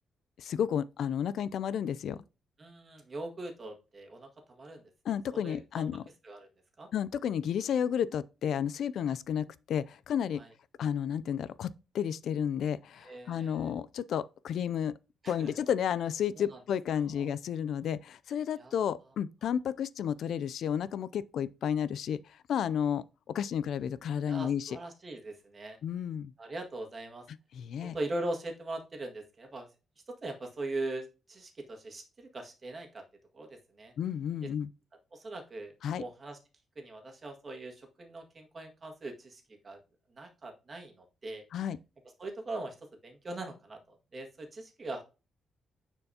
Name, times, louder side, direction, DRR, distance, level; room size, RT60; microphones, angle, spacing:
voice 1, 0.4-2.2 5.1-6.0 6.9-10.4 10.8-14.9 15.3-24.8 25.8-26.3 27.5-28.0 34.0-34.7 35.8-36.0 41.5-41.8, left 8 dB, 70° left, 0.3 m, -32 dB
voice 2, 2.6-4.9 5.3-5.8 6.2-6.5 6.8-6.9 10.4-10.5 13.0-13.7 15.2-15.5 16.3-16.6 17.1-17.3 18.6-18.8 24.3-25.8 26.4-27.3 27.8-29.7 30.1-33.0 33.3-33.9 34.4-34.5 35.1-36.4 36.7-39.8 40.1-41.4 42.2-42.7 43.0-45.0, right 2 dB, 35° right, 1.7 m, -41 dB
9.7 x 4.5 x 2.8 m
cardioid pair, 120°, 0 cm